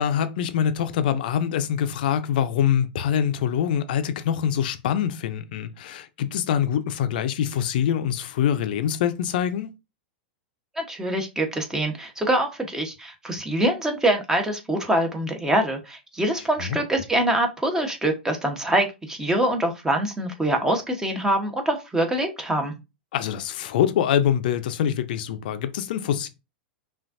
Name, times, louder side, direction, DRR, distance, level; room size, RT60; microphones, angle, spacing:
voice 1, 0.0-9.7 16.6-16.8 23.1-26.3, left 9 dB, 65° left, 0.6 m, -24 dB
voice 2, 10.7-22.7, right 1 dB, 10° right, 1.1 m, -24 dB
5.6 x 2.5 x 2.6 m
hypercardioid pair, 100°, 5 cm